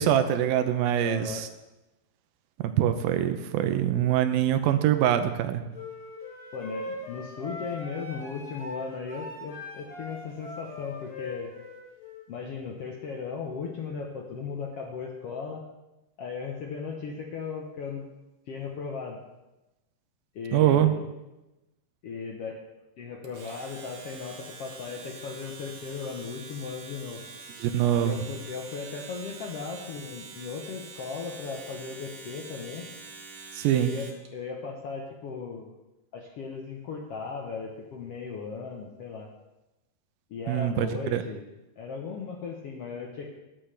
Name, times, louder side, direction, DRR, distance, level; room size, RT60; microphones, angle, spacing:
voice 1, 0.0-1.5 2.6-5.6 20.5-20.9 27.6-28.3 33.5-33.9 40.5-41.2, right 11 dB, 85° right, 9 dB, 2.5 m, -24 dB
voice 2, 1.0-1.4 6.5-11.5 12.3-15.6 16.2-18.0 18.5-19.2 20.3-21.0 22.0-22.6 23.0-27.2 28.0-32.9 33.7-34.1 34.3-35.7 36.1-39.3 40.3-41.4 41.8-43.4, left 5 dB, 90° left, 0 dB, 1.3 m, -37 dB
sound 1, 5.7-12.2, left 2 dB, 25° left, 3.4 m, -40 dB
Domestic sounds home sounds, 23.2-34.3, right 4 dB, 60° right, 2.7 m, -45 dB
21.5 x 7.6 x 3.4 m, 1.0 s
omnidirectional pair, 4.3 m